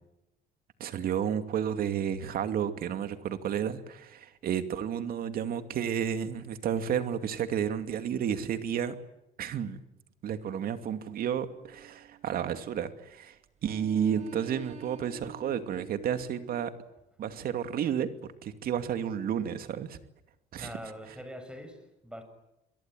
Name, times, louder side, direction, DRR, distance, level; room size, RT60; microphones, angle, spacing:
voice 1, 0.8-8.9 9.4-9.8 10.2-16.7 17.2-20.0 20.5-20.7, right 8 dB, 60° right, 9 dB, 2.6 m, -31 dB
sound 1, 11.5-13.1 13.6-16.7, right 7 dB, 40° right, 2.0 m, -49 dB
voice 2, 20.6-22.2, equal, 5° right, 9 dB, 6.8 m, -43 dB
28.0 x 22.5 x 9.2 m, 0.89 s
cardioid pair, 110°, 17 cm